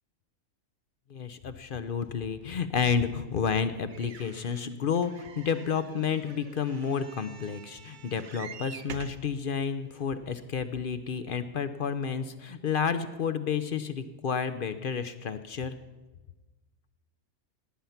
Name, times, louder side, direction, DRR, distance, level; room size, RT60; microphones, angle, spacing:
voice 1, 1.1-15.8, left 6 dB, 55° left, 11 dB, 0.6 m, -30 dB
sound 1, 3.9-9.3 10.0-10.1 10.3-10.4, right 7 dB, 55° right, 0.5 m, -47 dB
18.5 x 9.3 x 5.8 m, 1.2 s
omnidirectional pair, 1.6 m